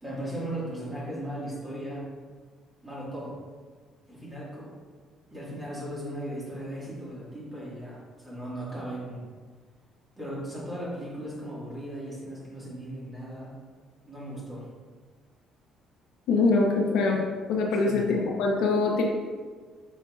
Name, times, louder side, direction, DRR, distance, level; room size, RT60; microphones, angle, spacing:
voice 1, 0.0-2.1 2.8-3.4 4.1-4.7 5.3-9.3 10.2-13.5 14.0-14.7 17.8-18.0, right 1 dB, 10° right, -7 dB, 1.8 m, -37 dB
voice 2, 16.3-17.2 17.5-19.0, left 3 dB, 85° left, 0 dB, 0.9 m, -23 dB
8.1 x 6.1 x 2.4 m, 1.5 s
cardioid pair, 170°, 0 cm